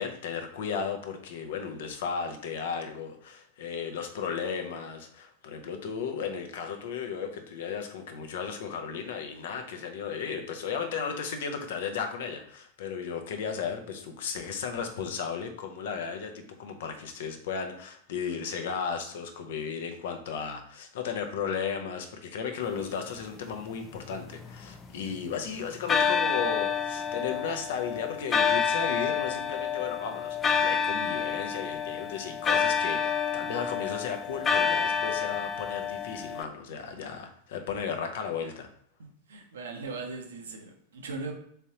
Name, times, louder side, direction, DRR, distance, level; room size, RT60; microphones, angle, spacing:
voice 1, 0.0-38.7, left 6 dB, 55° left, 6 dB, 0.7 m, -35 dB
sound 1, 23.8-25.3 25.9-36.4, left 6 dB, 20° left, 0.4 m, -28 dB
voice 2, 39.0-41.3, right 3 dB, 65° right, 3 dB, 0.7 m, -39 dB
4.1 x 3.7 x 2.8 m, 0.66 s
figure-of-eight pair, 90°, 0 cm